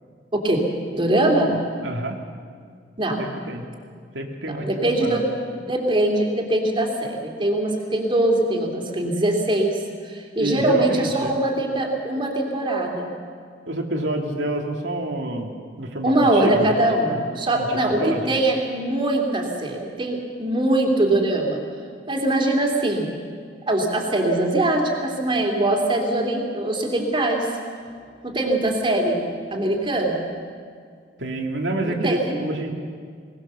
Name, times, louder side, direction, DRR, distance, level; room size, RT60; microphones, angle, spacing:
voice 1, 0.3-0.6 0.9-1.6 3.0-3.2 4.5-5.3 5.6-13.1 16.0-21.6 22.1-23.1 23.7-27.5 28.2-30.3 31.8-32.4, right 1 dB, 30° right, 1 dB, 2.9 m, -22 dB
voice 2, 1.8-2.2 3.2-3.7 4.1-5.2 10.4-11.3 13.7-16.7 17.2-17.3 17.5-17.7 18.0-18.2 31.2-32.7, right 1 dB, 85° right, 2 dB, 2.2 m, -28 dB
21.5 x 18.5 x 6.9 m, 2.1 s
head